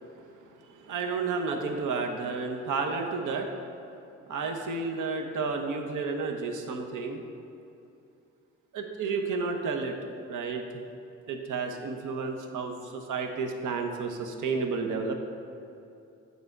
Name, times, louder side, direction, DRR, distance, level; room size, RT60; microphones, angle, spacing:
voice 1, 0.5-3.5 4.3-7.2 8.7-10.0 10.3-10.6 11.3-15.1, right 4 dB, 55° right, 3 dB, 1.0 m, -31 dB
8.5 x 4.0 x 4.7 m, 2.7 s
hypercardioid pair, 55°, 37 cm